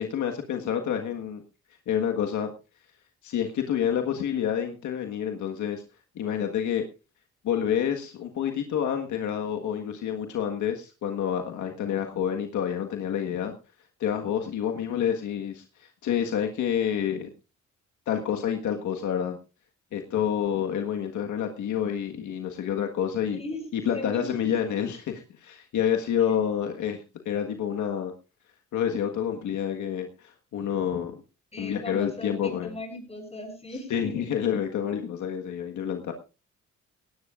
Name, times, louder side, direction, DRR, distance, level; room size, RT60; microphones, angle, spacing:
voice 1, 0.0-1.4 1.9-2.5 3.2-5.8 6.1-6.8 7.4-13.5 14.0-17.3 18.1-19.4 19.9-23.4 23.7-28.1 28.7-31.2 31.6-32.7 33.9-36.1, left 9 dB, 75° left, 4 dB, 1.6 m, -28 dB
voice 2, 23.3-24.8 26.2-26.3 31.5-34.3, left 1 dB, 20° left, 3 dB, 7.5 m, -38 dB
17.5 x 17.5 x 2.5 m, 0.31 s
cardioid pair, 90°, 30 cm